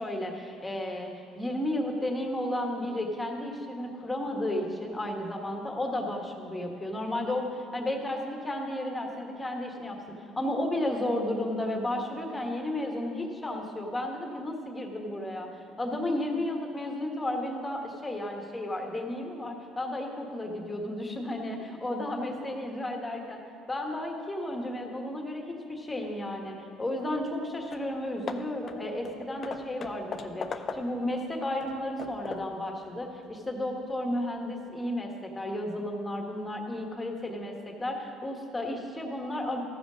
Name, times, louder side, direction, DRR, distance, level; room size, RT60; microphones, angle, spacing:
voice 1, 0.0-10.0 10.4-15.5 15.8-23.4 23.7-39.6, left 1 dB, 15° left, 2 dB, 1.4 m, -33 dB
Hammer / Wood, 27.3-27.4 27.7-27.9 28.3-31.1 31.6-32.6, left 5 dB, 35° left, 0.5 m, -39 dB
14.0 x 5.2 x 6.2 m, 2.5 s
cardioid pair, 105°, 0 cm